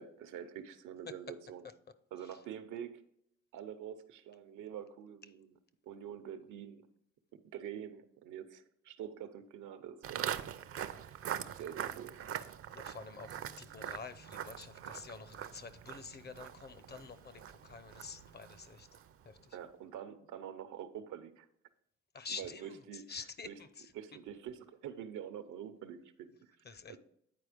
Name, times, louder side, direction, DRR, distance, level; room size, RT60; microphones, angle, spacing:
voice 1, 0.0-1.7 2.1-3.0 3.5-5.6 5.9-6.9 7.3-10.4 10.7-11.1 11.6-12.2 19.5-21.5 22.3-27.0, right 9 dB, 80° right, 10 dB, 0.8 m, -46 dB
Walk footsteps, 10.0-19.2, right 9 dB, 50° right, 0.5 m, -43 dB
voice 2, 12.7-18.9 19.3-19.4 22.1-22.6 23.1-23.7 26.7-27.0, left 5 dB, 35° left, 14 dB, 0.7 m, -48 dB
9.5 x 4.4 x 5.0 m, 0.72 s
cardioid pair, 90°, 30 cm